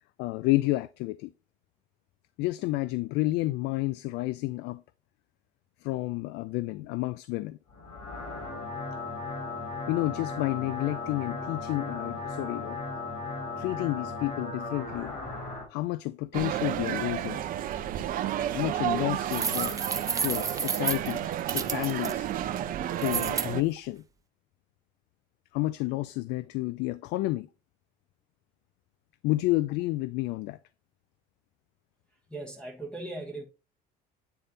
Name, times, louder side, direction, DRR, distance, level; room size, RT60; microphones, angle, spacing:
voice 1, 0.2-1.3 2.4-4.8 5.8-7.6 9.9-12.8 13.6-15.2 15.7-17.4 18.5-19.8 20.2-21.2 21.5-22.3 23.0-24.0 25.5-27.5 29.2-30.6, left 18 dB, 75° left, 0.4 m, -30 dB
sound 1, 7.7-15.7, left 3 dB, 40° left, 3.8 m, -36 dB
sound 2, 16.3-23.6, right 11 dB, 50° right, 0.8 m, -31 dB
sound 3, 19.3-22.1 23.0-23.5, right 5 dB, 20° right, 0.7 m, -31 dB
voice 2, 32.3-33.4, right 2 dB, 5° left, 1.3 m, -38 dB
9.0 x 3.4 x 4.0 m
cardioid pair, 120°, 18 cm